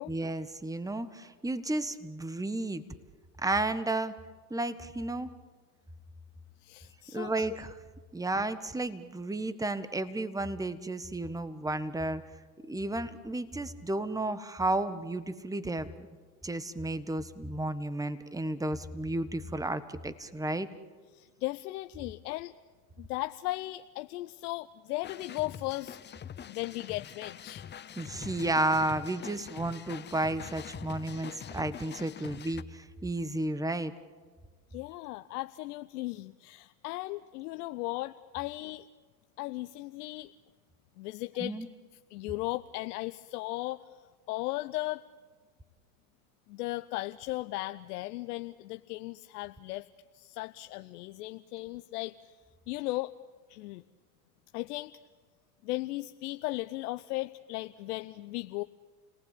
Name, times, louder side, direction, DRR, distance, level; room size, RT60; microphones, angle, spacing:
voice 1, 0.1-2.8 3.4-4.1 4.5-5.3 7.1-7.7 8.1-12.2 12.6-16.1 16.4-20.7 28.0-33.9 41.4-41.7, right 2 dB, 5° right, 12 dB, 1.4 m, -32 dB
voice 2, 6.6-7.5 21.1-22.5 23.0-26.0 26.4-27.7 34.7-38.9 39.4-40.3 41.0-41.6 42.1-45.0 46.5-49.9 50.1-52.3 52.7-53.1 53.5-53.8 54.5-54.9 55.6-58.6, left 19 dB, 75° left, 10 dB, 0.8 m, -36 dB
sound 1, 25.0-32.6, left 8 dB, 25° left, 0.7 m, -44 dB
29.5 x 19.0 x 8.5 m, 1.5 s
hypercardioid pair, 85°, 47 cm